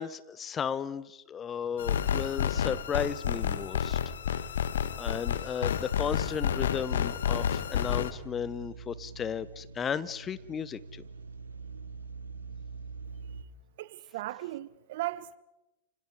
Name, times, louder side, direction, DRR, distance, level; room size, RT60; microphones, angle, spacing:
voice 1, 0.0-4.0 5.0-11.0, left 7 dB, 25° left, 0.9 m, -34 dB
sound 1, 1.8-8.1, left 8 dB, 70° left, 1.3 m, -30 dB
sound 2, 6.0-13.4, right 4 dB, 80° right, 1.2 m, -45 dB
voice 2, 13.8-15.4, right 16 dB, 55° right, 1.0 m, -37 dB
29.5 x 26.5 x 4.9 m
figure-of-eight pair, 100°, 0 cm